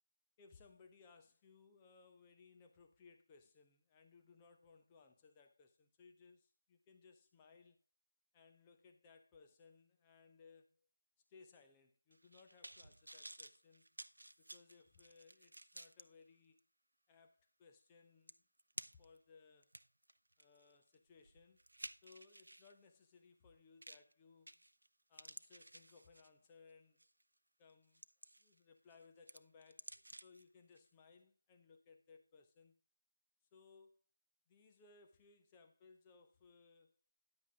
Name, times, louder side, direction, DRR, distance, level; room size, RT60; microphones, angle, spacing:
voice 1, 0.4-7.8 8.3-10.9 11.3-13.9 14.4-16.6 17.1-18.4 18.9-19.7 20.4-21.6 22.0-24.5 25.1-27.0 27.6-28.0 28.4-32.8 33.5-34.0 34.5-37.0, left 4 dB, 10° left, 0.7 m, -65 dB
sound 1, 12.1-16.0 16.6-16.7 17.9-18.0 18.3-19.2 19.6-22.7 23.8-24.1 24.5-24.9 25.1-26.5 27.0-27.2 27.7-28.6 28.9-30.4 30.8-30.9, right 1 dB, 50° right, 0.7 m, -54 dB
10.5 x 8.2 x 3.5 m
figure-of-eight pair, 170°, 0 cm